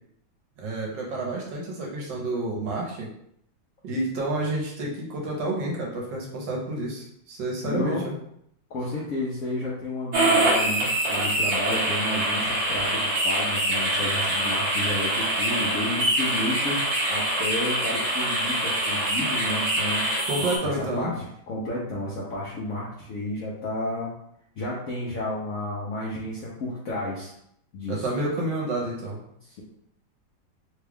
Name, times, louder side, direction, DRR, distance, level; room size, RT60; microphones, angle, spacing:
voice 1, 0.6-3.1 3.8-8.1 20.3-21.1 27.9-29.2, right 2 dB, 70° right, -2 dB, 1.4 m, -29 dB
voice 2, 7.6-8.0 8.7-16.8 17.1-20.1 20.8-21.1 21.5-24.1 24.6-27.3 27.7-28.0, left 1 dB, 70° left, -6 dB, 0.8 m, -31 dB
sound 1, 10.1-20.6, right 1 dB, 50° right, 0.9 m, -25 dB
3.4 x 2.3 x 3.4 m, 0.72 s
omnidirectional pair, 2.2 m